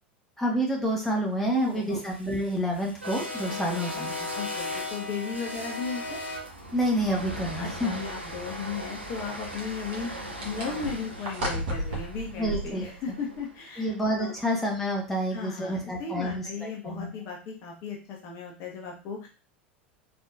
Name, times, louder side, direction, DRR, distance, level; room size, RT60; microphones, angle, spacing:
voice 1, 0.4-4.3 6.7-8.0 12.3-12.9 13.8-17.1, equal, 5° left, -2 dB, 1.2 m, -28 dB
voice 2, 1.5-2.0 3.5-3.6 3.9-4.1 4.3-6.2 7.6-13.9 14.2-14.3 15.3-19.3, left 5 dB, 45° left, 0 dB, 1.0 m, -36 dB
sound 1, 1.8-13.9, left 1 dB, 85° right, 0.7 m, -38 dB
sound 2, 7.0-7.1 9.2-13.4, right 1 dB, 60° right, 1.5 m, -35 dB
3.8 x 3.4 x 2.6 m, 0.34 s
figure-of-eight pair, 80°, 6 cm